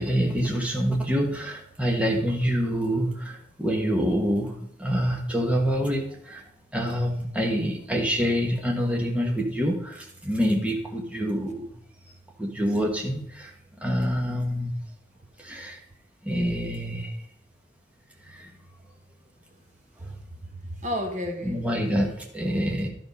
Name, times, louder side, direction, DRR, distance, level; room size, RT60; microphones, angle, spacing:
voice 1, 0.0-4.5 4.8-6.4 6.7-11.7 12.4-13.5 13.8-14.7 15.4-15.8 16.2-17.2 18.2-18.5 21.4-22.9, equal, 5° right, 0 dB, 1.3 m, -26 dB
voice 2, 16.3-16.8 20.0-21.6, equal, 35° right, 4 dB, 1.3 m, -33 dB
12.0 x 5.7 x 5.3 m, 0.75 s
head